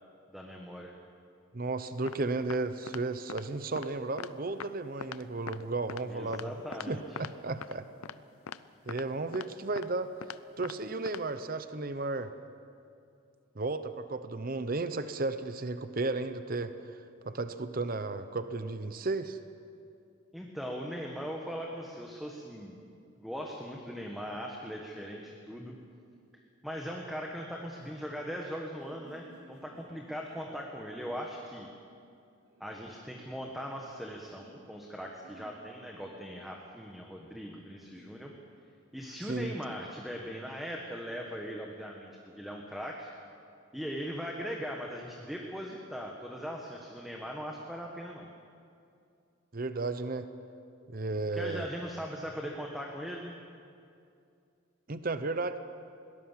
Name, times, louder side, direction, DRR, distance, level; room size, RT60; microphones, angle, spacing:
voice 1, 0.3-0.9 6.1-7.2 20.3-22.8 23.2-25.8 26.6-31.7 32.6-38.3 38.9-43.1 43.7-48.3 51.3-53.3, equal, ahead, 0 dB, 1.3 m, -40 dB
voice 2, 1.5-6.5 6.9-7.9 8.9-10.1 10.6-12.3 13.6-19.4 39.2-39.5 49.5-50.3 50.9-51.7 54.9-55.6, right 3 dB, 40° right, 11 dB, 0.7 m, -34 dB
sound 1, 2.1-2.2 2.5-2.6 2.9-3.0 3.3-3.4 3.8-3.9 4.2-4.3 4.6-4.7 5.0-5.2 5.5-5.6 5.9-6.0 6.3-6.5 6.7-6.9 7.2-7.3 7.6-7.7 8.0-8.1 8.5-8.6 8.9-9.0 9.3-9.5 9.8-9.9 10.2-10.4 10.6-10.8 11.1-11.2, left 7 dB, 90° left, 0.6 m, -41 dB
sound 2, 27.9-31.0 32.4-33.5 34.3-36.4 37.8-38.1, right 1 dB, 85° right, 5.3 m, -60 dB
21.5 x 18.5 x 7.4 m, 2.5 s
head